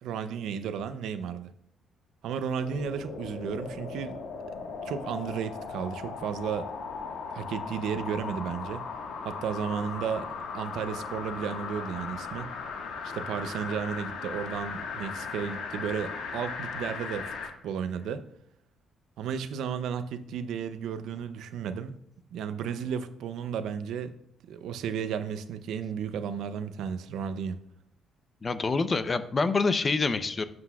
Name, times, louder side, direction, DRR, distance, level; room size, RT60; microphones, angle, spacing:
voice 1, 0.0-1.5 2.2-4.2 4.8-6.7 7.3-8.8 9.2-12.5 13.0-17.3 17.6-18.2 19.2-22.0 22.3-24.1 24.5-27.6, right 7 dB, 80° right, 11 dB, 0.6 m, -33 dB
sound 1, 2.6-17.5 18.0-18.1, left 5 dB, 85° left, 1.6 m, -38 dB
voice 2, 28.4-30.4, left 4 dB, 35° left, 11 dB, 0.7 m, -26 dB
11.5 x 7.8 x 2.4 m, 0.72 s
cardioid pair, 90°, 0 cm